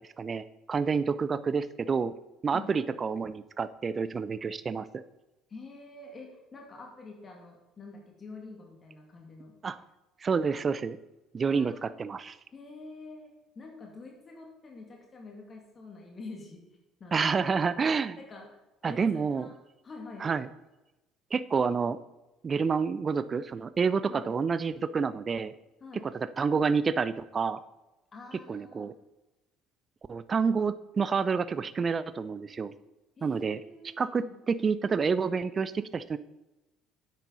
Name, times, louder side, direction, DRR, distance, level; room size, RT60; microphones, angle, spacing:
voice 1, 0.2-2.1 2.4-5.0 9.6-9.8 10.2-11.0 11.3-12.4 17.1-18.2 18.8-19.5 20.2-20.5 21.3-22.0 22.4-25.5 26.0-27.6 28.5-28.9 30.1-32.7 33.2-33.6 34.0-36.2, right 5 dB, 35° right, 15 dB, 0.6 m, -28 dB
voice 2, 5.5-9.5 11.5-12.0 12.5-16.7 17.0-17.6 18.2-18.5 18.8-19.6 19.8-20.3 24.0-24.3 25.8-26.1 28.1-28.9 33.2-34.3, left 3 dB, 35° left, 0 dB, 2.4 m, -47 dB
9.8 x 8.4 x 4.1 m, 1.0 s
figure-of-eight pair, 55°, 0 cm